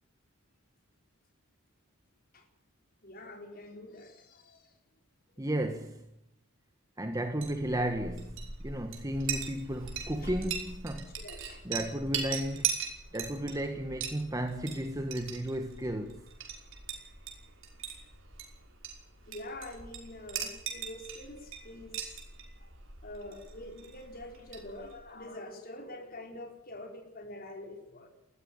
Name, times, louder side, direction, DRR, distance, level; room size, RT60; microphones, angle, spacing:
voice 1, 3.0-4.7 10.2-10.4 11.2-11.7 19.2-22.2 23.0-28.1, left 1 dB, 45° left, 4.6 m, -46 dB
voice 2, 5.4-6.1 7.0-11.1 11.6-12.7 13.1-16.2, right 1 dB, 15° right, 1.4 m, -34 dB
Chink clink, 7.2-25.1, right 7 dB, 60° right, 5.6 m, -40 dB
20.5 x 15.0 x 8.8 m
head